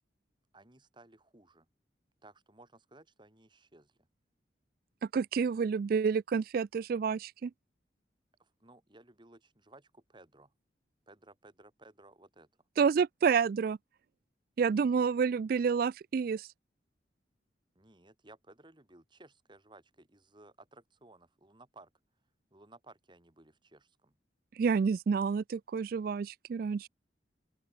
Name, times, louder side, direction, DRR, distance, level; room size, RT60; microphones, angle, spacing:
voice 1, 0.5-1.7 2.2-4.1 8.4-10.5 11.1-12.5 17.8-21.9 22.5-24.2, right 2 dB, 25° right, 2.2 m, -58 dB
voice 2, 5.1-7.5 12.8-13.8 14.6-16.5 24.6-26.9, right 6 dB, 55° right, 0.3 m, -29 dB
open air
head